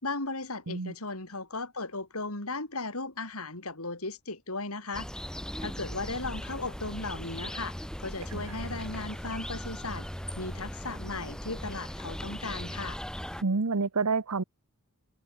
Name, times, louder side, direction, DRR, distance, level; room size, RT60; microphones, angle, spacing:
voice 1, 0.0-5.1 5.6-10.1 10.4-13.0, left 3 dB, 70° left, 5.9 m, -36 dB
sound 1, 4.9-13.4, equal, 5° left, 3.7 m, -38 dB
voice 2, 13.4-14.4, right 4 dB, 85° right, 1.0 m, -28 dB
head